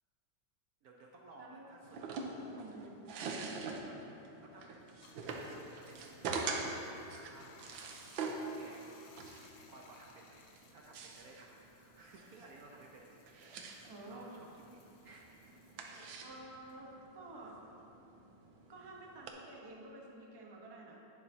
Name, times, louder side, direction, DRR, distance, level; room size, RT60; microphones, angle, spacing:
voice 1, 0.8-2.9 3.8-4.9 5.4-6.7 6.9-7.9 8.2-9.1 9.4-10.5 10.7-13.8 14.0-15.9, right 2 dB, 60° right, -1 dB, 1.0 m, -58 dB
voice 2, 1.3-1.7 2.4-3.0 13.9-14.3 16.2-17.6 18.7-21.0, right 2 dB, 20° right, -2 dB, 0.6 m, -51 dB
sound 1, 1.8-19.3, right 4 dB, 85° right, 1.5 m, -44 dB
Bathtub (filling or washing), 4.8-17.6 18.0-19.8, left 4 dB, 85° left, 1.6 m, -64 dB
11.0 x 9.2 x 2.8 m, 2.9 s
omnidirectional pair, 2.1 m